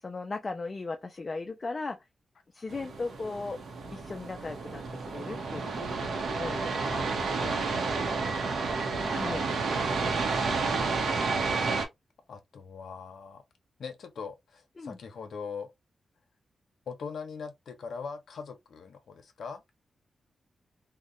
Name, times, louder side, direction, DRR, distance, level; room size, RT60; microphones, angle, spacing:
voice 1, 0.0-2.0 2.5-3.6 3.9-6.7 9.1-9.5 14.8-15.0, left 3 dB, 30° left, 0.4 m, -37 dB
sound 1, 2.7-11.8, right 4 dB, 70° right, 0.7 m, -30 dB
voice 2, 6.8-8.3 9.9-10.8 12.3-13.4 13.8-15.7 16.9-19.6, left 5 dB, 70° left, 0.6 m, -42 dB
2.8 x 2.1 x 2.4 m
wide cardioid pair, 140°, 0 cm